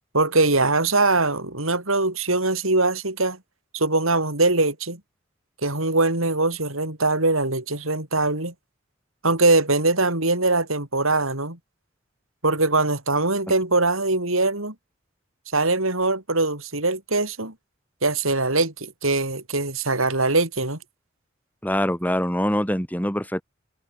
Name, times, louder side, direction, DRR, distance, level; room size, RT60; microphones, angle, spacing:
voice 1, 0.1-3.4 3.7-5.0 5.6-8.5 9.2-11.6 12.4-14.7 15.5-17.5 18.0-20.8, right 2 dB, 80° right, 6.8 m, -22 dB
voice 2, 21.6-23.4, equal, 10° left, 6.0 m, -24 dB
head